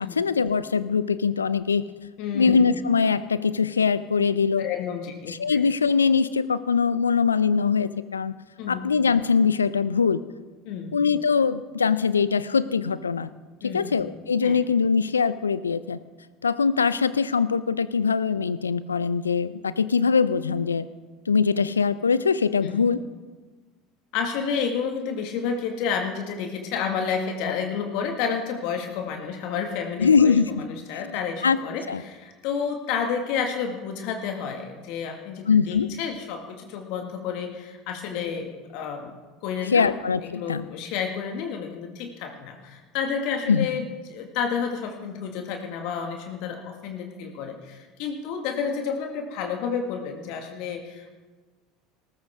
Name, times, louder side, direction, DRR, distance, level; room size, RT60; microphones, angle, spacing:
voice 1, 0.2-1.8 2.3-4.6 5.4-8.3 8.7-10.2 10.9-13.3 13.7-16.0 16.4-20.9 21.3-23.0 30.0-30.6 31.0-31.2 31.4-31.6 31.9-32.0 35.5-35.9 39.7-40.6 43.5-43.7, left 5 dB, 85° left, 16 dB, 0.5 m, -22 dB
voice 2, 2.2-2.7 4.6-5.6 8.6-8.9 10.7-10.9 13.6-13.9 14.4-14.6 22.6-22.8 24.1-39.1 39.4-39.9 40.2-51.1, left 6 dB, 60° left, 4 dB, 1.9 m, -30 dB
18.5 x 14.0 x 3.6 m, 1.3 s
figure-of-eight pair, 75°, 0 cm